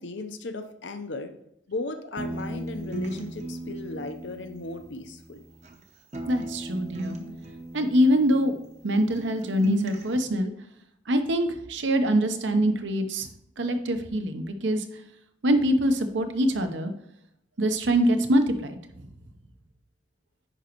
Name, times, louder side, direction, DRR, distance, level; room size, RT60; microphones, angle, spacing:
voice 1, 0.0-1.3 1.7-5.4, left 3 dB, 70° left, 8 dB, 0.7 m, -36 dB
sound 1, 2.2-5.8 6.1-8.9 9.2-10.2, right 2 dB, 35° right, 0.8 m, -37 dB
voice 2, 6.3-7.2 7.7-8.5 8.8-10.5 11.1-13.3 13.6-14.8 15.4-16.9 17.6-18.8, equal, 75° right, 7 dB, 0.8 m, -24 dB
10.0 x 5.1 x 3.0 m, 0.76 s
head